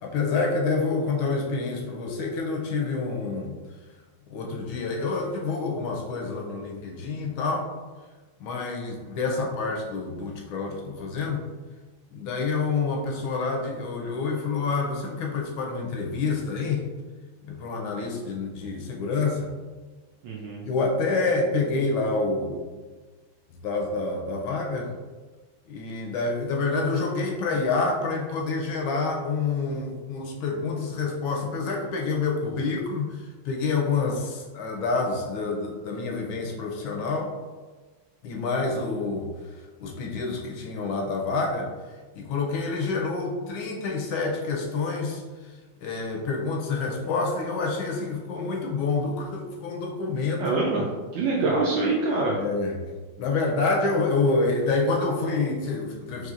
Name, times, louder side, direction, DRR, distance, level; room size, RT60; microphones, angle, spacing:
voice 1, 0.0-3.5 4.3-7.7 8.4-11.5 12.1-16.9 17.4-19.5 20.6-22.8 23.5-24.9 25.7-37.3 38.2-39.3 39.8-50.5 52.3-52.8 53.2-56.3, left 3 dB, 75° left, 1 dB, 1.3 m, -28 dB
voice 2, 20.2-20.6 50.4-52.4, right 3 dB, 75° right, -3 dB, 1.0 m, -25 dB
4.1 x 3.1 x 2.4 m, 1.3 s
omnidirectional pair, 2.4 m